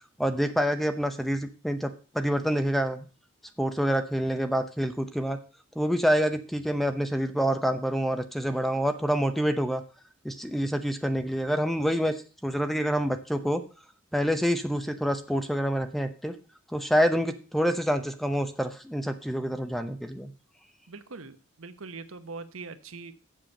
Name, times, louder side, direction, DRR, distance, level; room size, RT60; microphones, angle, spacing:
voice 1, 0.2-3.1 3.6-5.4 5.8-9.8 10.2-12.1 12.4-13.6 14.1-16.3 16.7-20.3, equal, ahead, 8 dB, 0.7 m, -27 dB
voice 2, 20.9-23.1, right 4 dB, 70° right, 11 dB, 1.0 m, -42 dB
7.6 x 7.0 x 6.4 m, 0.36 s
head